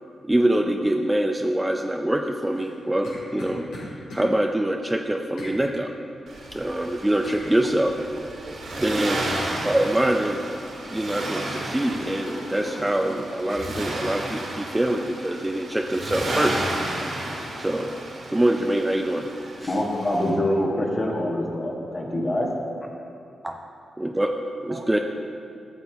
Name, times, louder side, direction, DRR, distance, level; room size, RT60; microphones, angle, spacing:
voice 1, 0.2-3.7 4.1-5.9 6.5-7.9 8.8-9.2 9.6-10.4 10.9-16.7 17.6-17.9 18.3-19.3 19.6-19.7 23.4-23.6 24.0-24.3 24.6-25.0, right 1 dB, 15° right, 3 dB, 0.5 m, -24 dB
sound 1, 2.5-4.3 5.4-5.6 7.2-7.4 9.4-9.7 10.1-10.8 11.1-11.2 11.5-13.2 13.7-13.8, left 1 dB, 85° left, 2.1 m, -39 dB
Accelerating revving vroom, 6.3-20.3, right 1 dB, 75° right, 2.0 m, -33 dB
voice 2, 7.4-9.4 24.7-25.0, right 3 dB, 55° right, 3 dB, 0.9 m, -40 dB
voice 3, 19.6-22.5, left 1 dB, 40° left, -1 dB, 1.7 m, -25 dB
11.5 x 6.8 x 3.5 m, 2.5 s
supercardioid pair, 50°, 0 cm